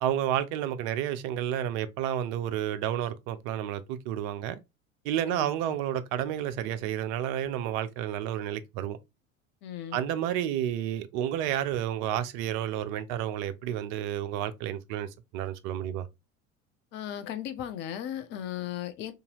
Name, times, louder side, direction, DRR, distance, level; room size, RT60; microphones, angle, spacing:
voice 1, 0.0-4.6 5.0-9.0 9.9-16.1, right 10 dB, 40° right, 0.4 m, -31 dB
voice 2, 5.3-5.7 9.6-10.0 16.9-19.1, left 10 dB, 30° left, 0.4 m, -36 dB
2.6 x 2.5 x 2.7 m
figure-of-eight pair, 75°, 40 cm